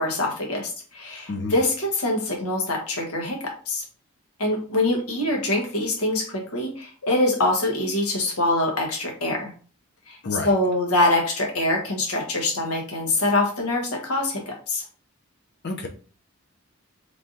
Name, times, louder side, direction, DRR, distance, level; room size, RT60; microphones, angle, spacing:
voice 1, 0.0-3.4 3.7-3.8 4.4-9.5 10.1-10.2 10.4-14.8, left 2 dB, 80° left, 0 dB, 1.1 m, -24 dB
voice 2, 1.3-1.5 10.2-10.5 15.6-15.9, left 3 dB, 50° left, 3 dB, 0.5 m, -28 dB
3.3 x 2.6 x 3.8 m, 0.40 s
head